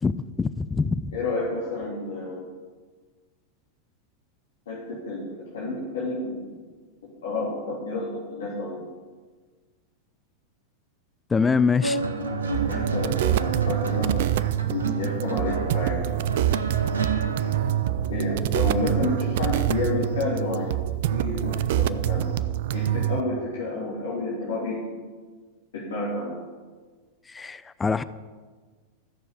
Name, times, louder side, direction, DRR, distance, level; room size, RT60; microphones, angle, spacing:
voice 1, 0.0-1.1 11.3-12.0 27.3-28.0, left 5 dB, 15° left, 0.5 m, -24 dB
voice 2, 1.1-2.5 4.7-6.6 7.2-8.9 12.7-14.3 14.7-16.0 18.1-20.8 21.1-22.3 22.7-25.0 25.7-26.4, left 2 dB, 60° left, 3.2 m, -30 dB
sound 1, 11.8-20.5 21.5-21.8, right 3 dB, 70° right, 1.4 m, -31 dB
sound 2, 12.5-23.2, right 12 dB, 55° right, 0.4 m, -26 dB
14.5 x 6.9 x 8.2 m
figure-of-eight pair, 90°, 0 cm